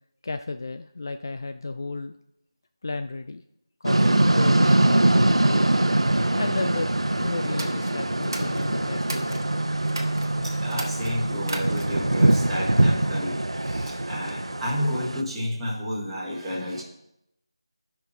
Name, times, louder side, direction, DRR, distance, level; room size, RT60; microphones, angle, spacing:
voice 1, 0.2-2.2 2.8-3.4 3.8-5.7 6.3-6.9 7.2-9.7, left 3 dB, 40° left, 9 dB, 0.3 m, -33 dB
sound 1, 3.8-15.2, right 1 dB, 85° right, 0.7 m, -23 dB
sound 2, 6.7-12.3, left 2 dB, 75° left, 1.4 m, -43 dB
sound 3, 7.5-9.4 9.9-10.3 10.7-12.1, right 2 dB, 45° right, 1.2 m, -37 dB
voice 2, 10.4-16.8, equal, 5° right, -10 dB, 1.6 m, -31 dB
12.0 x 5.8 x 4.0 m, 0.80 s
figure-of-eight pair, 170°, 3 cm